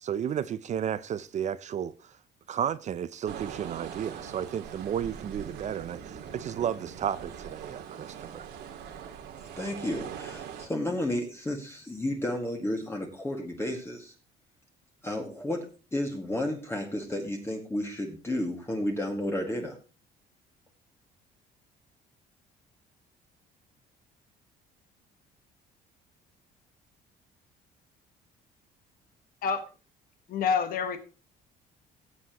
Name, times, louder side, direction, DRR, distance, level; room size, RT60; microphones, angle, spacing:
voice 1, 0.0-1.9 2.5-8.5, right 9 dB, 45° right, 0.5 m, -33 dB
sound 1, 3.3-10.7, right 8 dB, 85° right, 2.0 m, -42 dB
voice 2, 9.6-14.1 15.0-15.6 15.9-19.8, left 1 dB, 15° left, 1.9 m, -32 dB
voice 3, 30.3-31.0, left 6 dB, 60° left, 1.4 m, -27 dB
18.5 x 7.5 x 3.0 m
cardioid pair, 110°, 17 cm